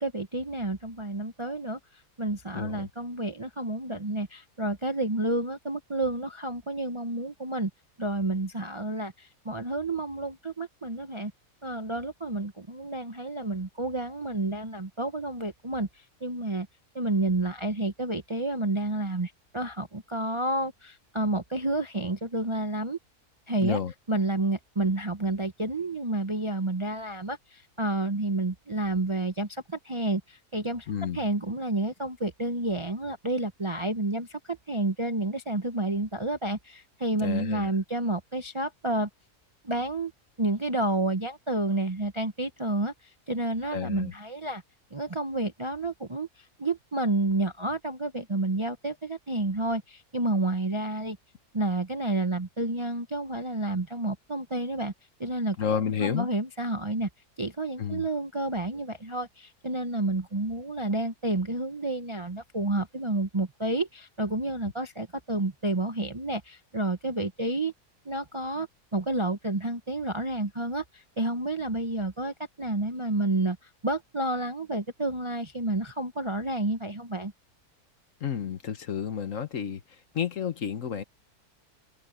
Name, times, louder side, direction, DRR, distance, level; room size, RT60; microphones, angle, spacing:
voice 1, 0.0-1.8 2.2-7.7 8.0-11.3 11.6-15.9 16.2-16.7 16.9-23.0 23.5-23.8 24.1-30.9 31.1-39.1 39.6-40.1 40.4-42.9 43.3-44.6 44.9-46.3 46.6-51.2 51.5-54.9 55.2-55.6 56.0-57.1 57.4-67.7 68.1-68.7 68.9-73.6 73.8-77.3, right 2 dB, 25° right, 0.7 m, -30 dB
voice 2, 2.5-2.9 23.6-23.9 30.9-31.2 37.2-37.7 43.7-44.1 55.6-56.3 57.8-58.0 78.2-79.8 80.1-81.0, left 8 dB, 60° left, 1.4 m, -30 dB
open air
omnidirectional pair, 1.7 m